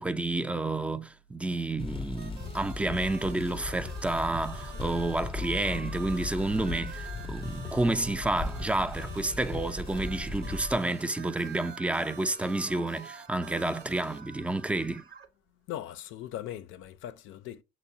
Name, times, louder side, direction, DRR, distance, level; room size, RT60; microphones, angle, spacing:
voice 1, 0.0-15.0, right 2 dB, 5° right, 0.3 m, -30 dB
sound 1, 1.8-10.7, left 3 dB, 25° left, 0.6 m, -37 dB
sound 2, 2.2-14.2, right 6 dB, 55° right, 0.7 m, -49 dB
sound 3, 3.1-15.3, right 7 dB, 80° right, 0.9 m, -49 dB
voice 2, 15.5-17.6, left 12 dB, 90° left, 0.4 m, -40 dB
6.0 x 2.0 x 2.6 m
cardioid pair, 90°, 20 cm